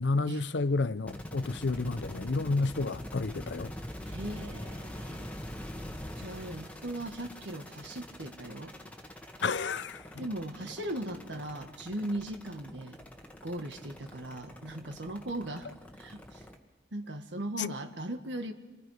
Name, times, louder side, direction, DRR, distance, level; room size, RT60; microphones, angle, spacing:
voice 1, 0.0-3.7 9.4-10.3 17.6-17.7, left 3 dB, 80° left, 0.6 m, -31 dB
sound 1, 1.1-16.6, left 1 dB, 10° left, 1.6 m, -44 dB
voice 2, 4.0-5.3 6.2-8.7 10.2-13.0 13.4-15.7 16.0-16.4 16.9-18.5, right 1 dB, 85° right, 1.7 m, -38 dB
29.0 x 23.5 x 5.0 m
head